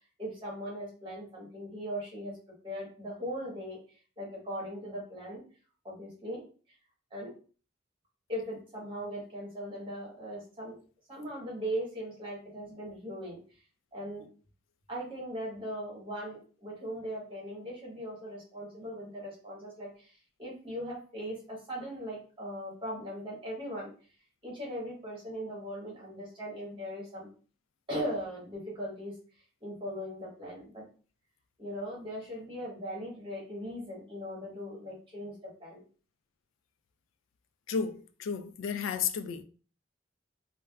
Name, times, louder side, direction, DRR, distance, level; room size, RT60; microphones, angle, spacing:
voice 1, 0.2-2.3 2.6-5.4 5.8-6.4 7.1-7.3 8.3-10.7 11.1-13.4 13.9-14.2 14.9-23.9 24.4-27.3 27.9-29.1 29.6-30.8 31.6-35.9, equal, 25° right, 1.2 m, -39 dB
voice 2, 37.7-39.4, left 6 dB, 80° left, 0.3 m, -33 dB
3.3 x 2.1 x 2.3 m
head